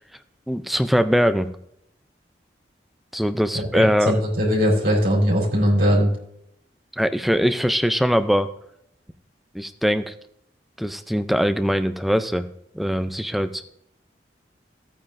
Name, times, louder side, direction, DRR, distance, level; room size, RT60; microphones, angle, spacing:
voice 1, 0.5-1.5 3.1-4.1 7.0-8.5 9.5-10.1 10.8-12.5 12.7-13.6, equal, ahead, 9 dB, 0.3 m, -21 dB
voice 2, 3.5-6.1, equal, 60° right, -4 dB, 4.1 m, -20 dB
15.0 x 8.8 x 2.5 m, 0.76 s
head